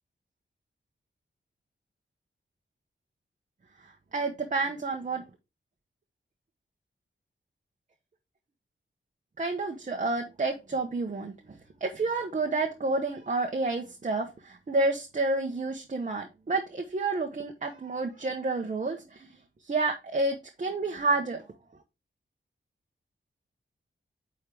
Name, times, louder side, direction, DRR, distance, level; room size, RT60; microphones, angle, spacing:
voice 1, 4.1-5.2 9.4-11.3 11.8-19.3 19.6-21.4, right 3 dB, 40° right, 0.9 m, -29 dB
9.1 x 3.7 x 3.4 m
wide cardioid pair, 95°, 20 cm